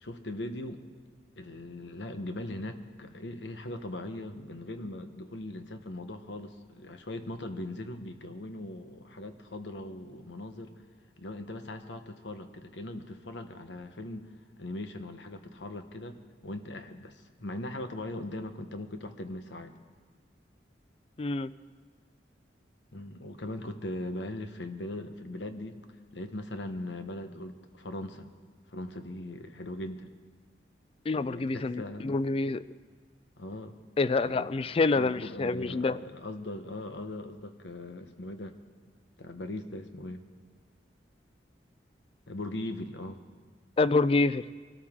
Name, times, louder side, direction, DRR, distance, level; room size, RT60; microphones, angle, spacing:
voice 1, 0.0-0.8 1.4-10.7 11.2-14.3 14.6-17.1 17.4-19.7 22.9-25.8 26.1-28.3 28.7-30.1 31.1-32.1 33.4-33.7 34.2-34.5 34.9-38.6 39.2-40.2 42.3-43.2, left 1 dB, 85° left, 7 dB, 1.1 m, -40 dB
voice 2, 21.2-21.5 31.1-32.6 34.0-36.0 43.8-44.4, left 3 dB, 30° left, 16 dB, 0.3 m, -27 dB
24.0 x 13.0 x 3.7 m, 1.5 s
head